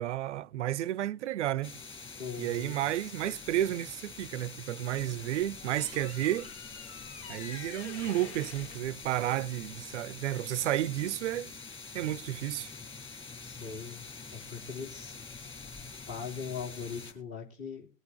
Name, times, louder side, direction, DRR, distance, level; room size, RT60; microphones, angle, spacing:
voice 1, 0.0-1.8 2.4-6.5 7.3-11.5 11.9-12.7, right 13 dB, 60° right, 0.6 m, -32 dB
sound 1, 1.6-17.1, left 4 dB, 15° left, 4.8 m, -46 dB
voice 2, 2.2-2.8 13.4-14.1 14.5-15.2 16.1-17.9, left 6 dB, 35° left, 3.2 m, -40 dB
sound 2, 4.8-10.0, left 6 dB, 55° left, 1.3 m, -49 dB
20.0 x 8.2 x 3.8 m
figure-of-eight pair, 95°, 39 cm